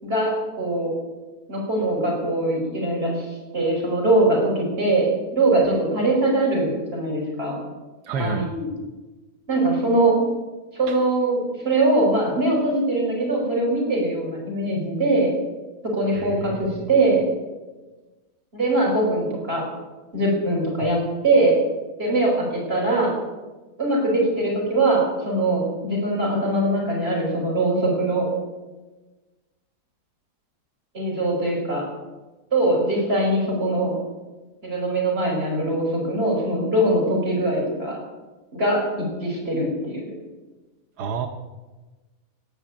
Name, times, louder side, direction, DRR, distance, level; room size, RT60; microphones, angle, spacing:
voice 1, 0.0-0.9 1.5-3.3 3.5-7.6 8.1-8.7 9.5-10.2 10.7-15.3 15.8-17.2 18.5-19.7 20.1-21.6 22.0-23.2 23.8-28.3 30.9-31.8 32.5-33.9 34.6-38.0 38.5-40.0, right 2 dB, 40° right, -3 dB, 5.3 m, -22 dB
voice 2, 8.0-8.5 10.9-11.0 16.1-16.9 20.8-20.9 41.0-41.3, right 4 dB, 90° right, 5 dB, 1.5 m, -29 dB
17.0 x 5.9 x 8.6 m, 1.2 s
omnidirectional pair, 1.7 m